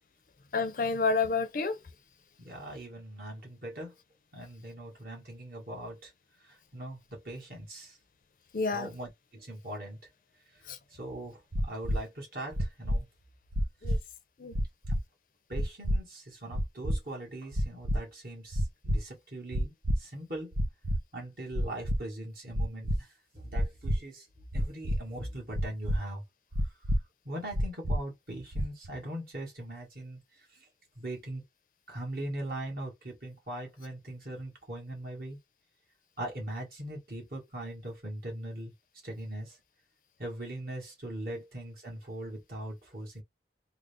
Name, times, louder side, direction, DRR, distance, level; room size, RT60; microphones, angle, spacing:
voice 1, 0.5-1.8 8.5-8.9 10.7-10.8 13.8-14.0 14.4-14.5, left 4 dB, 45° left, 0.5 m, -29 dB
voice 2, 2.4-3.9 4.3-6.1 6.5-8.0 8.7-10.0 10.9-13.1 15.5-20.5 21.1-23.1 23.3-24.2 24.5-26.2 27.2-30.2 30.5-30.6 30.9-31.4 31.9-35.4 36.2-38.7 39.0-39.6 40.2-43.2, right 1 dB, 55° right, 1.7 m, -40 dB
sound 1, 11.5-12.0 12.5-13.0 13.5-14.0 14.5-15.0 15.5-16.0 16.5-17.0 17.5-18.0 18.5-19.0 19.5-20.0 20.5-21.0 21.5-22.0 22.5-23.0 23.5-24.0 24.5-25.0 25.5-26.0 26.5-27.0 27.5-28.0 28.5-28.9, equal, 85° right, 0.8 m, -28 dB
3.7 x 2.0 x 3.4 m
head